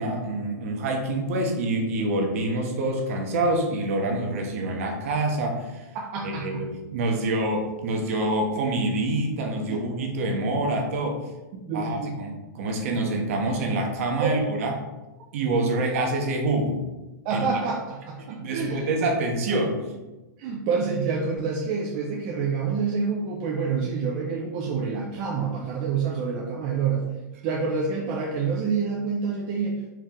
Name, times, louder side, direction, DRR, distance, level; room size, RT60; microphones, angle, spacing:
voice 1, 0.0-5.8 6.2-11.2 11.7-14.7 15.3-16.8 17.3-17.4 18.3-19.8, right 2 dB, 50° right, 2 dB, 1.0 m, -26 dB
voice 2, 5.9-6.6 9.7-9.9 11.5-12.1 14.2-14.4 17.2-18.9 20.4-27.1 27.4-29.9, right 5 dB, 30° right, -2 dB, 0.5 m, -27 dB
4.5 x 3.1 x 3.7 m, 1.1 s
supercardioid pair, 165°, 10 cm